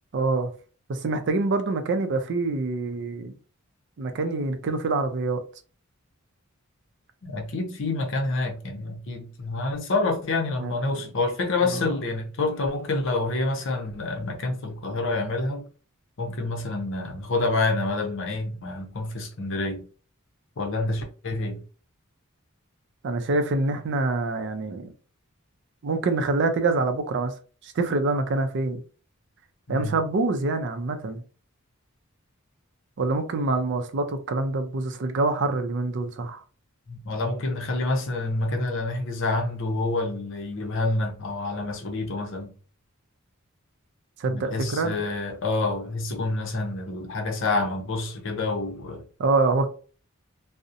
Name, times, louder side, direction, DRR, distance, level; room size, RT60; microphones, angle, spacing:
voice 1, 0.1-0.5 0.9-3.4 4.0-5.4 10.6-11.1 11.7-11.9 23.0-24.9 25.8-27.3 27.6-28.8 29.7-31.2 33.0-36.4 44.2-45.0 49.2-49.7, right 3 dB, 55° right, 0.4 m, -25 dB
voice 2, 7.2-15.7 16.2-19.8 20.6-21.6 29.7-29.9 36.9-42.5 44.3-49.0, left 2 dB, 60° left, 0.6 m, -28 dB
2.7 x 2.0 x 2.5 m
head